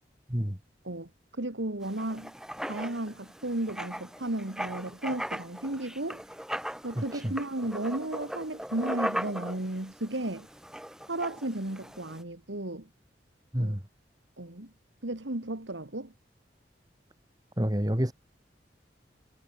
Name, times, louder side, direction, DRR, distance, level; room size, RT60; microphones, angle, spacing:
voice 1, 1.4-2.3 2.7-6.2 6.8-10.5 11.1-12.9 13.6-13.8 14.4-14.7 15.0-16.1, right 1 dB, 85° right, 2.5 m, -34 dB
Writing, 1.8-12.2, equal, 5° right, 3.6 m, -38 dB
voice 2, 7.0-7.3 13.5-13.8 17.6-18.1, equal, 20° right, 2.8 m, -28 dB
head